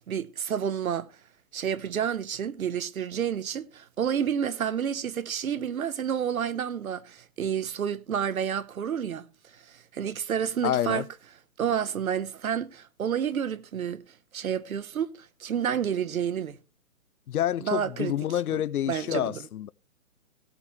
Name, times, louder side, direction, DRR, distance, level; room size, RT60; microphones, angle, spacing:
voice 1, 0.1-1.1 1.5-9.3 9.7-11.1 11.6-14.0 14.3-15.1 15.4-16.6 17.6-18.1 18.5-18.6 18.9-19.4, right 8 dB, 70° right, 1.0 m, -29 dB
voice 2, 10.6-11.1 17.3-19.7, left 11 dB, 90° left, 0.5 m, -28 dB
17.0 x 8.4 x 3.1 m
hypercardioid pair, 160°, 43 cm